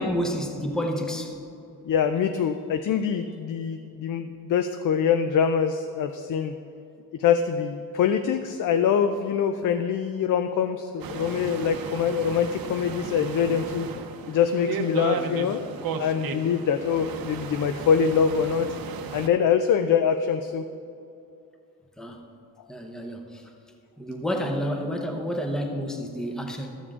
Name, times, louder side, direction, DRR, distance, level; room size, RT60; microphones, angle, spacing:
voice 1, 0.0-1.4 15.1-15.6 22.0-22.3 22.7-23.4 24.0-26.8, equal, ahead, 3 dB, 0.7 m, -30 dB
voice 2, 1.8-6.5 7.2-13.9 14.3-15.7 16.0-18.7 19.1-20.6, left 7 dB, 60° left, 8 dB, 0.5 m, -24 dB
sound 1, 11.0-19.3, right 6 dB, 80° right, 0.7 m, -35 dB
13.0 x 7.1 x 3.6 m, 2.6 s
wide cardioid pair, 165°, 35 cm